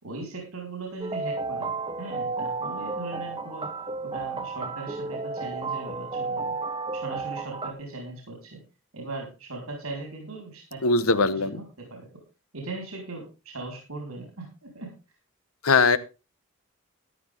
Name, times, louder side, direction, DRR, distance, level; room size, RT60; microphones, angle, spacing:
voice 1, 0.0-1.7 2.0-3.7 4.0-6.6 6.9-8.6 8.9-12.1 12.5-14.9, right 2 dB, 80° right, 1 dB, 4.7 m, -39 dB
sound 1, 1.0-7.7, right 3 dB, 25° right, 1.0 m, -32 dB
voice 2, 10.8-11.5 15.6-16.0, left 4 dB, 80° left, 14 dB, 1.1 m, -20 dB
14.0 x 11.0 x 3.7 m, 0.30 s
head